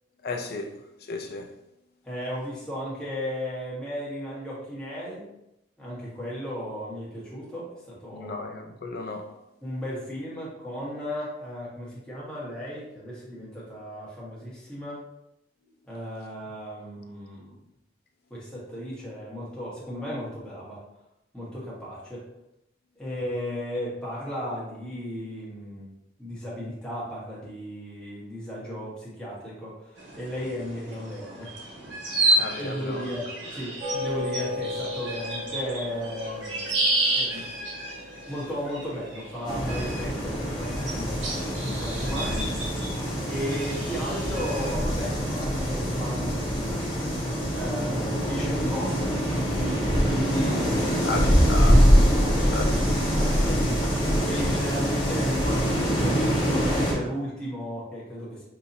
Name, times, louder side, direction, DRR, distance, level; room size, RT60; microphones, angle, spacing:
voice 1, 0.2-1.5 8.1-9.3 32.3-33.2 37.3-37.6 51.0-52.1 52.4-52.7, left 3 dB, 55° left, 0.5 m, -34 dB
voice 2, 2.0-5.2 5.8-8.4 9.6-15.0 15.9-17.6 18.3-20.8 21.3-22.2 22.9-31.5 32.6-36.7 37.1-37.5 38.3-42.5 43.2-49.3 49.8-51.2 53.1-58.4, equal, 5° left, 1.3 m, -35 dB
sound 1, 30.0-45.0, right 2 dB, 85° right, 1.3 m, -31 dB
sound 2, 33.8-39.3, left 2 dB, 35° right, 0.7 m, -36 dB
sound 3, 39.4-56.9, equal, 25° left, 1.2 m, -24 dB
5.4 x 2.8 x 2.7 m
head